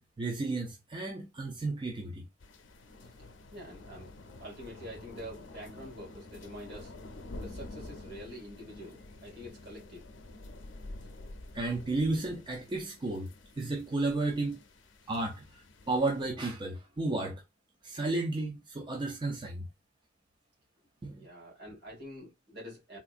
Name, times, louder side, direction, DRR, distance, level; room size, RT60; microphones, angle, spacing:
voice 1, 0.0-2.2 11.5-13.3 13.6-14.6 15.1-17.4 17.8-19.6 21.0-21.2, right 2 dB, 25° right, 0.5 m, -33 dB
sound 1, 2.4-16.3, left 2 dB, 75° left, 0.6 m, -48 dB
voice 2, 3.5-4.1 4.4-6.9 7.4-10.0 21.1-23.0, equal, 60° right, 2.2 m, -46 dB
3.7 x 2.6 x 2.5 m
head